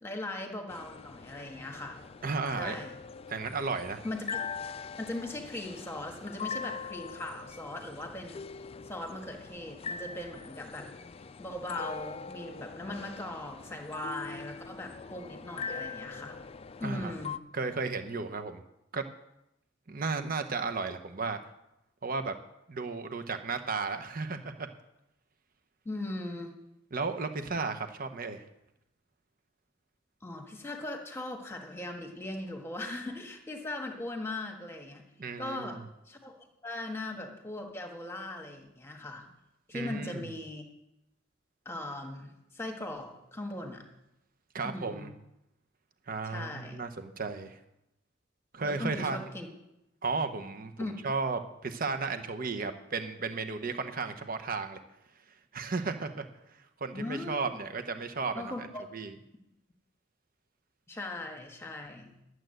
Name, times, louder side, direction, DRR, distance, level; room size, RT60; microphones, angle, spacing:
voice 1, 0.0-2.0 2.5-3.0 4.0-4.4 5.0-8.4 8.8-10.9 11.4-16.4 16.8-17.4 25.8-26.5 30.2-35.0 35.4-35.8 36.1-39.3 39.7-40.6 41.6-43.8 44.6-45.1 46.2-46.8 48.6-49.5 50.8-51.0 56.9-57.4 58.3-58.9 60.9-62.1, left 1 dB, 15° left, 3 dB, 1.6 m, -39 dB
sound 1, 0.7-17.4, left 5 dB, 30° left, 0.4 m, -42 dB
voice 2, 2.2-2.8 3.3-4.0 16.8-17.1 17.5-18.6 18.9-19.0 19.9-21.4 22.0-22.3 22.7-24.7 26.9-28.4 35.2-35.8 39.7-40.3 44.5-45.1 46.1-47.6 48.5-49.3 50.0-54.8 55.5-56.2 56.8-58.7 58.9-59.1, right 4 dB, 45° right, 7 dB, 0.9 m, -34 dB
11.5 x 7.8 x 7.8 m, 0.86 s
head